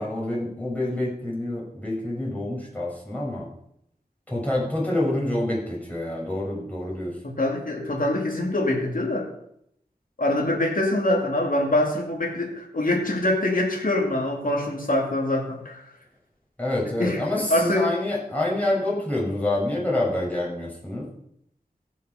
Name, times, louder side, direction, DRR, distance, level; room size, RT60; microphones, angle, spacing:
voice 1, 0.0-3.5 4.3-7.1 16.6-21.1, left 1 dB, 10° left, -5 dB, 6.2 m, -27 dB
voice 2, 7.2-9.3 10.2-15.9 17.0-17.9, left 1 dB, 55° left, 0 dB, 2.5 m, -24 dB
15.5 x 6.5 x 5.8 m, 0.73 s
wide cardioid pair, 70°, 17 cm